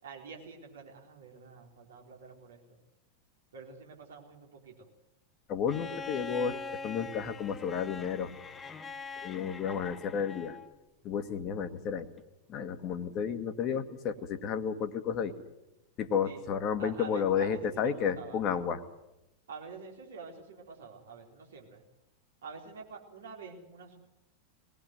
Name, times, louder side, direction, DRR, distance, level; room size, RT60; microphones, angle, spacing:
voice 1, 0.0-2.6 3.5-4.9 16.2-16.4 16.8-18.4 19.5-21.8 22.4-24.0, right 5 dB, 65° right, 0 dB, 4.3 m, -47 dB
voice 2, 5.5-8.3 9.2-10.6 11.0-12.1 12.5-15.3 16.0-18.8, left 7 dB, 35° left, 8 dB, 1.8 m, -32 dB
Bowed string instrument, 5.7-10.7 12.2-12.3, left 4 dB, 15° left, 1.1 m, -43 dB
21.5 x 19.0 x 7.8 m, 0.92 s
figure-of-eight pair, 90°, 0 cm